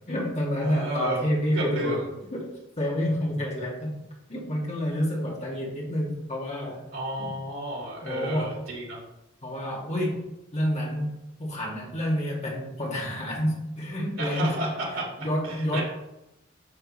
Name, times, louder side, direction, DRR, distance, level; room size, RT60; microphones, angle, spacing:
voice 1, 0.1-2.0 2.3-2.5 2.8-4.0 4.3-6.8 7.2-7.3 8.0-8.6 9.4-11.1 11.4-14.6 15.2-15.8, equal, 35° left, -3 dB, 2.4 m, -28 dB
voice 2, 0.6-1.2 1.5-2.1 6.9-9.0 14.2-15.1 15.4-15.8, right 1 dB, 90° right, -3 dB, 2.6 m, -32 dB
9.1 x 6.7 x 3.3 m, 0.90 s
head